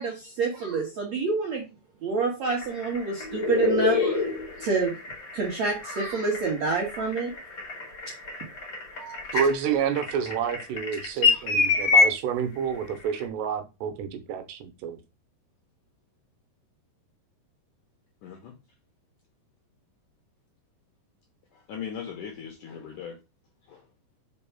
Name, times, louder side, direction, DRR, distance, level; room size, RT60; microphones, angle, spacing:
voice 1, 0.0-1.6 2.0-4.3 4.6-4.9 5.3-7.3 8.9-9.2 11.3-12.0, right 4 dB, 65° right, 1.7 m, -28 dB
sound 1, 2.5-12.1 13.2-13.3, left 4 dB, 40° left, 1.8 m, -26 dB
voice 2, 9.3-15.0, right 7 dB, 80° right, 2.9 m, -29 dB
voice 3, 18.2-18.5 21.5-23.2 23.7-23.8, left 7 dB, 75° left, 1.9 m, -39 dB
5.4 x 4.5 x 5.7 m
omnidirectional pair, 5.1 m